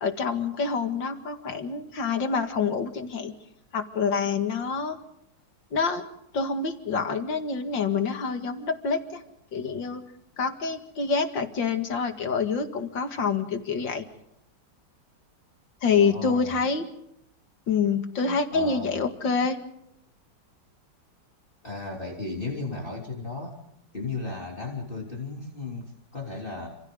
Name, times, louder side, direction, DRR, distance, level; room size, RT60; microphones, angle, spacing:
voice 1, 0.0-3.3 3.7-5.0 5.7-6.0 6.3-9.2 9.5-10.0 10.4-14.1 15.8-16.8 17.7-19.6, left 5 dB, 70° left, 7 dB, 2.7 m, -27 dB
voice 2, 15.9-16.6 18.5-19.0 21.6-23.6 23.9-26.8, left 3 dB, 25° left, -1 dB, 3.6 m, -35 dB
29.5 x 27.5 x 3.9 m, 0.79 s
omnidirectional pair, 2.1 m